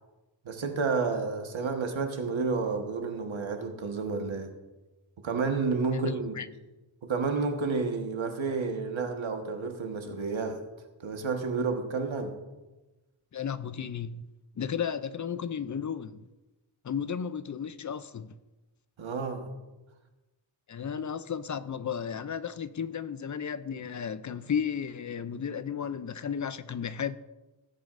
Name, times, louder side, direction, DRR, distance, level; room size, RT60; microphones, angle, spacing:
voice 1, 0.4-4.5 5.2-6.4 7.0-10.6 11.0-12.3 19.0-19.5, right 4 dB, 80° right, 1.4 m, -30 dB
voice 2, 5.9-6.5 13.3-14.2 14.6-16.2 16.8-18.3 20.7-27.2, left 7 dB, 40° left, 0.4 m, -34 dB
17.5 x 9.2 x 2.5 m
wide cardioid pair, 130°, 46 cm